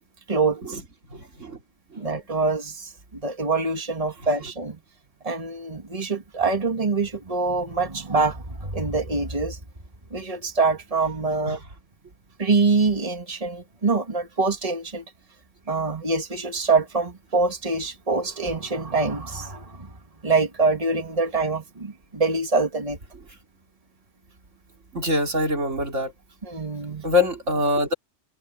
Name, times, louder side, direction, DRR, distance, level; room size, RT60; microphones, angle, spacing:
voice 1, 0.3-0.8 2.0-4.8 5.2-9.6 10.1-11.6 12.4-15.0 15.7-19.9 20.2-23.0 26.4-27.1, right 3 dB, 30° right, 2.1 m, -25 dB
voice 2, 1.1-1.6 11.5-11.6 24.9-26.1 27.0-27.9, left 2 dB, 90° right, 3.7 m, -24 dB
omnidirectional pair, 1.2 m